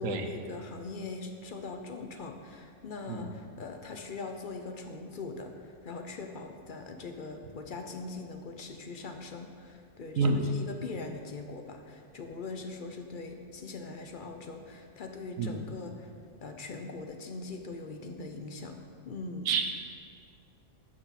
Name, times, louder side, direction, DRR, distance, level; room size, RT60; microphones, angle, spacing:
voice 1, 0.0-16.1 16.4-18.8 19.0-19.6, left 3 dB, 50° left, 5 dB, 0.7 m, -41 dB
voice 2, 10.2-10.5 15.4-15.5 19.5-19.7, right 4 dB, 80° right, 6 dB, 1.2 m, -27 dB
12.0 x 6.1 x 4.2 m, 2.2 s
omnidirectional pair, 1.4 m